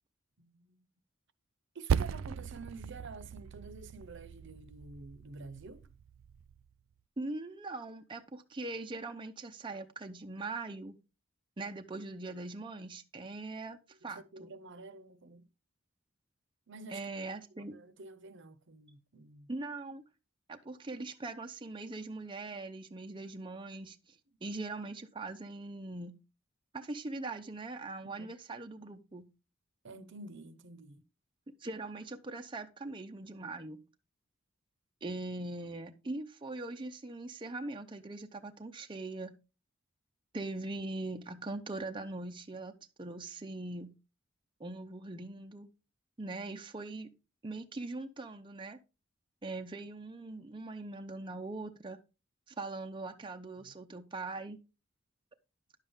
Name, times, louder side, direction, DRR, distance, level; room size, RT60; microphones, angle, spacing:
voice 1, 0.4-0.9 1.7-5.9 14.0-15.5 16.7-17.0 17.5-19.5 28.0-28.3 29.8-31.0 53.6-53.7, right 3 dB, 65° right, 0.9 m, -49 dB
Percussion, 1.9-6.7, right 7 dB, 90° right, 0.4 m, -37 dB
voice 2, 7.2-11.0 11.6-14.5 16.9-17.8 19.5-20.0 20.5-26.1 26.7-29.3 31.6-33.8 35.0-39.3 40.3-43.9 44.6-45.7 46.2-47.1 47.4-48.8 49.4-52.0 52.5-54.6, right 2 dB, 25° right, 0.6 m, -41 dB
10.5 x 7.1 x 3.6 m
head